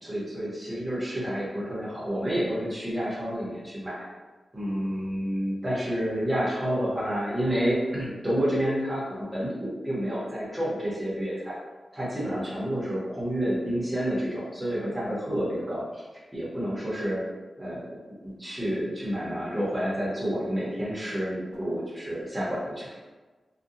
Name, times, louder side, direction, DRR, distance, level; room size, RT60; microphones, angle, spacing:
voice 1, 0.0-4.1 4.5-11.6 11.9-16.0 16.3-17.2 17.6-22.9, equal, 10° right, -8 dB, 0.8 m, -29 dB
2.6 x 2.1 x 2.7 m, 1.3 s
wide cardioid pair, 170°, 0 cm